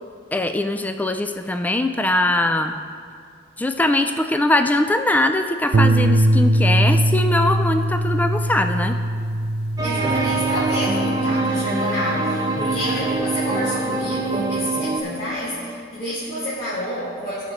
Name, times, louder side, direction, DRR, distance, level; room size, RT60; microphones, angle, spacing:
voice 1, 0.3-2.7 3.6-9.0, left 1 dB, 10° left, 7 dB, 0.4 m, -21 dB
sound 1, 5.7-14.1, right 1 dB, 60° right, 0.5 m, -22 dB
voice 2, 9.8-17.5, equal, 40° left, -12 dB, 3.0 m, -29 dB
sound 2, 9.8-15.0, right 3 dB, 20° right, 1.0 m, -24 dB
17.5 x 6.6 x 4.2 m, 2.2 s
head